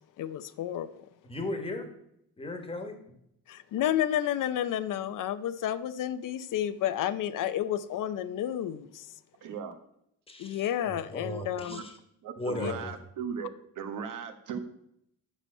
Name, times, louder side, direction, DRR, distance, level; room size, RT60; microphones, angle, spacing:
voice 1, 0.2-0.9 3.5-9.1 10.4-11.8 12.6-12.7, left 11 dB, 65° left, 13 dB, 0.6 m, -31 dB
voice 2, 1.3-1.9 2.4-3.0 10.3-11.9 12.4-12.9, left 2 dB, 15° left, 5 dB, 1.4 m, -36 dB
voice 3, 9.4-9.8 11.7-11.8 12.2-14.6, right 7 dB, 65° right, 7 dB, 1.3 m, -37 dB
9.0 x 6.9 x 5.4 m, 0.74 s
cardioid pair, 170°, 34 cm